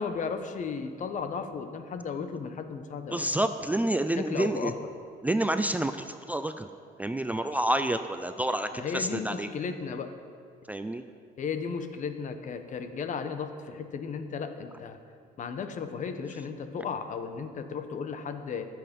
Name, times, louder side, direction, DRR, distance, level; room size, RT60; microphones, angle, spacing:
voice 1, 0.0-3.3 3.7-3.8 4.1-4.7 8.7-10.1 11.4-15.0 15.4-18.7, left 5 dB, 50° left, 8 dB, 1.2 m, -35 dB
voice 2, 3.1-4.7 5.2-6.7 7.0-9.5 10.7-11.0, right 1 dB, 10° right, 9 dB, 0.4 m, -28 dB
20.5 x 7.8 x 5.4 m, 2.2 s
cardioid pair, 110°, 17 cm